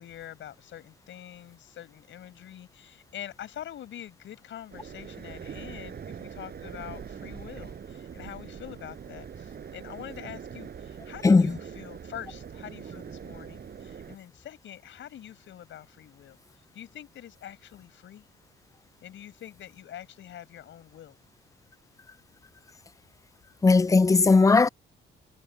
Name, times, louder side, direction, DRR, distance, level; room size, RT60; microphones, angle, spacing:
voice 1, 0.0-16.4 16.7-18.3 19.0-21.2, left 11 dB, 70° left, 6.9 m, -45 dB
sound 1, 4.7-14.2, right 7 dB, 50° right, 6.4 m, -42 dB
voice 2, 11.2-11.6 23.6-24.7, left 4 dB, 15° left, 0.4 m, -18 dB
cardioid pair, 90°, 20 cm